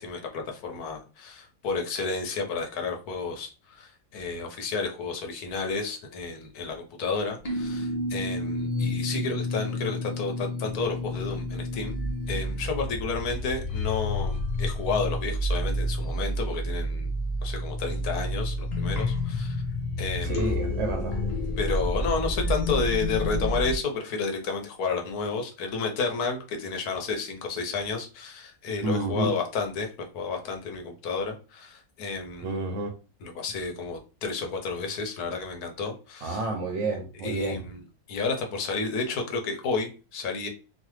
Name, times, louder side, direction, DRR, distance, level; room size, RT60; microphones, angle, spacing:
voice 1, 0.0-12.0 12.3-17.1 17.4-19.6 20.0-20.6 21.6-32.5 33.2-36.5 37.1-40.5, left 4 dB, 80° left, 1.2 m, -31 dB
sound 1, 7.4-23.8, left 1 dB, 55° left, 0.4 m, -29 dB
voice 2, 20.3-21.1 28.8-29.2 32.4-32.9 36.2-37.6, right 2 dB, 70° right, 0.7 m, -29 dB
3.2 x 2.0 x 3.0 m
omnidirectional pair, 1.7 m